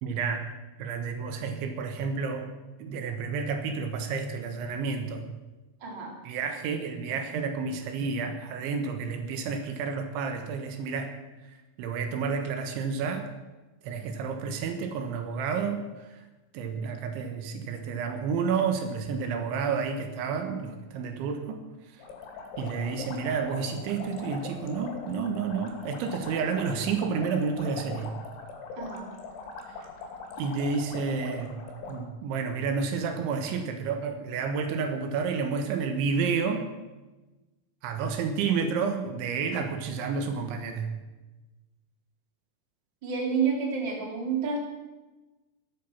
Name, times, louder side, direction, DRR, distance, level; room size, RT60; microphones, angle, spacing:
voice 1, 0.0-0.5 0.8-2.5 2.8-5.3 6.3-11.1 11.8-13.3 13.8-16.3 16.5-21.6 21.9-22.0 22.6-28.1 30.4-31.6 31.9-36.7 37.8-40.9, right 5 dB, 80° right, 6 dB, 3.7 m, -30 dB
voice 2, 5.8-6.1 28.8-29.1 43.0-44.6, right 5 dB, 30° right, 0 dB, 2.9 m, -29 dB
sound 1, 22.0-32.0, left 4 dB, 80° left, 5.0 m, -41 dB
15.0 x 12.5 x 7.2 m, 1.1 s
omnidirectional pair, 5.4 m